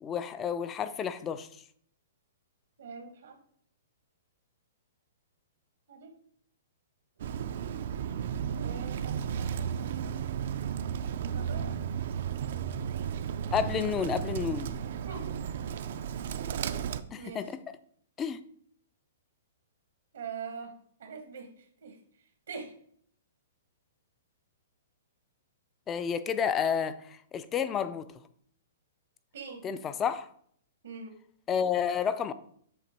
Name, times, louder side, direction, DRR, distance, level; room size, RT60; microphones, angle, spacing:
voice 1, 0.0-1.5 13.5-14.7 17.1-17.6 18.2-18.4 25.9-28.1 29.6-30.3 31.5-32.3, left 7 dB, 15° left, 0.3 m, -30 dB
voice 2, 2.8-3.4 5.9-6.1 8.5-10.2 11.3-11.8 15.1-15.3 17.1-17.5 20.1-20.7 21.0-22.0 22.5-22.7 29.3-29.7 30.8-31.2, right 5 dB, 80° right, 1.2 m, -43 dB
Bird, 7.2-17.0, right 8 dB, 60° right, 0.4 m, -34 dB
7.8 x 3.0 x 4.3 m
hypercardioid pair, 155°, 0 cm